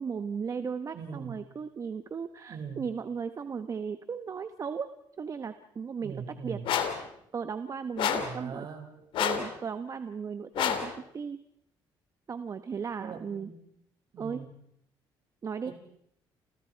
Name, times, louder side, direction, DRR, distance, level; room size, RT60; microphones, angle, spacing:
voice 1, 0.0-4.9 5.2-6.6 7.3-8.7 9.2-11.4 12.3-13.5 14.2-14.4 15.4-15.7, right 6 dB, 40° right, 10 dB, 1.2 m, -36 dB
voice 2, 0.9-1.4 2.5-2.9 6.0-6.7 8.2-9.1 13.0-13.6 14.1-14.5 15.7-15.8, right 6 dB, 60° right, 5 dB, 5.6 m, -41 dB
sound 1, 6.6-7.0 8.0-8.4 9.1-9.5 10.5-10.9, left 9 dB, 75° left, 2.9 m, -28 dB
30.0 x 28.0 x 4.7 m, 0.72 s
cardioid pair, 110°, 9 cm